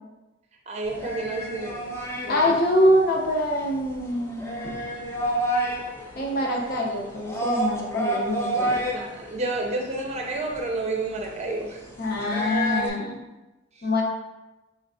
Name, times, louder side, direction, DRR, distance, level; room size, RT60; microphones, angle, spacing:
voice 1, 0.7-1.9 2.2-2.5 8.9-11.8, right 2 dB, 35° right, 0 dB, 0.6 m, -30 dB
sound 1, 0.9-12.9, right 1 dB, 15° left, 0.5 m, -31 dB
voice 2, 2.3-4.7 6.2-8.8 12.0-13.2 13.8-14.0, left 1 dB, 50° left, -1 dB, 0.7 m, -24 dB
4.4 x 3.2 x 2.6 m, 1.1 s
head